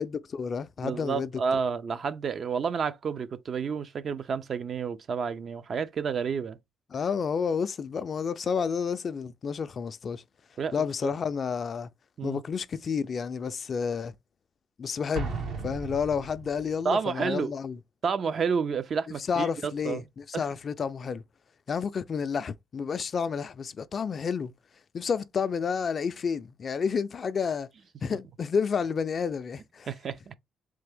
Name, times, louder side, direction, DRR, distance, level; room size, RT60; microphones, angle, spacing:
voice 1, 0.0-1.3 6.9-10.2 10.7-11.9 12.2-14.1 14.8-17.8 19.3-21.2 21.7-24.5 24.9-27.7 28.0-29.9, left 6 dB, 45° left, 0.4 m, -30 dB
voice 2, 0.8-6.6 10.6-11.1 12.2-12.4 16.8-17.5 18.0-20.0 20.3-20.4 29.9-30.4, right 6 dB, 50° right, 0.5 m, -30 dB
Explosion, 15.1-16.8, right 4 dB, 80° right, 1.2 m, -35 dB
3.6 x 3.4 x 3.4 m
cardioid pair, 90°, 0 cm